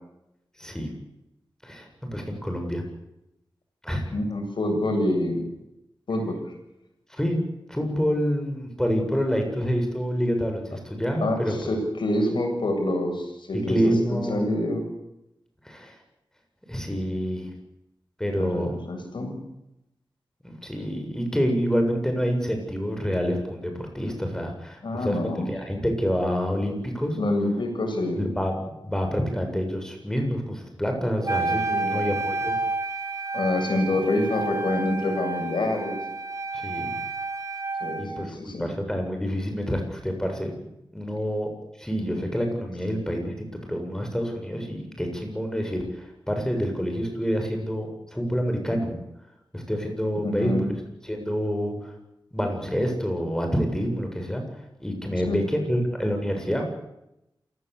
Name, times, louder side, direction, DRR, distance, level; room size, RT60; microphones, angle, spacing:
voice 1, 0.6-0.9 1.6-2.8 3.8-4.0 7.1-7.4 7.7-11.5 13.5-14.5 15.6-15.9 16.7-17.5 18.2-18.7 20.4-27.2 28.2-32.5 36.6-36.9 38.0-40.5 40.9-41.5 41.8-49.0 49.5-50.7 51.0-51.9 52.3-54.4 54.8-56.7, equal, 5° left, 4 dB, 7.6 m, -27 dB
voice 2, 4.1-5.4 6.1-6.4 11.2-14.8 18.4-19.4 24.8-25.5 27.2-28.2 31.7-31.9 33.3-36.0 37.8-38.7 50.2-50.7 55.3-55.4, left 1 dB, 75° left, 3 dB, 7.8 m, -26 dB
Wind instrument woodwind instrument, 31.2-38.2, right 3 dB, 40° right, 7.1 m, -30 dB
28.0 x 17.5 x 8.6 m, 0.88 s
wide cardioid pair, 85°, 8 cm